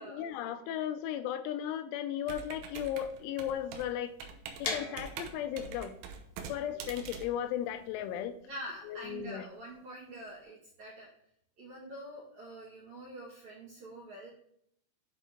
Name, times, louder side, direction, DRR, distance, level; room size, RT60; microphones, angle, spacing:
voice 1, 0.0-4.1 4.6-6.0 6.5-8.4 8.9-9.4, left 10 dB, 85° left, 9 dB, 3.1 m, -36 dB
Computer keyboard, 2.3-8.2, right 6 dB, 85° right, 3.4 m, -45 dB
sound 1, 4.6-10.4, left 4 dB, 65° left, 2.5 m, -43 dB
voice 2, 8.5-11.1 11.6-14.3, right 1 dB, 60° right, -5 dB, 2.0 m, -46 dB
10.5 x 3.9 x 3.7 m, 0.67 s
omnidirectional pair, 5.5 m